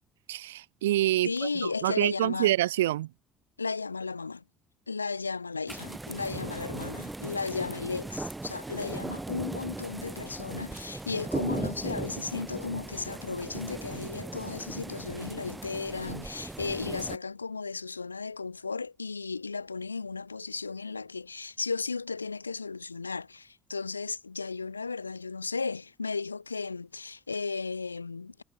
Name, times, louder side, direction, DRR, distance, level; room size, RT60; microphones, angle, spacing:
voice 1, 0.3-3.1, right 15 dB, 70° right, 1.7 m, -27 dB
voice 2, 1.2-2.5 3.6-4.4 4.9-28.4, left 4 dB, 85° left, 2.4 m, -35 dB
sound 1, 5.7-17.2, right 2 dB, 15° right, 1.2 m, -38 dB
figure-of-eight pair, 55°, 0 cm